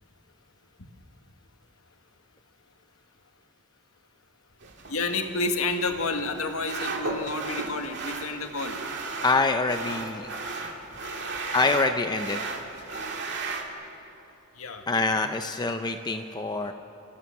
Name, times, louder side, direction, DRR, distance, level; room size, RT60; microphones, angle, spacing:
sound 1, 4.6-13.6, right 3 dB, 55° right, 2.0 m, -35 dB
voice 1, 4.9-8.8 14.5-14.8, left 3 dB, 80° left, 5 dB, 1.7 m, -30 dB
voice 2, 9.2-10.3 11.5-12.4 14.9-16.7, left 3 dB, 20° left, 7 dB, 0.6 m, -25 dB
28.5 x 14.0 x 7.2 m, 2.9 s
head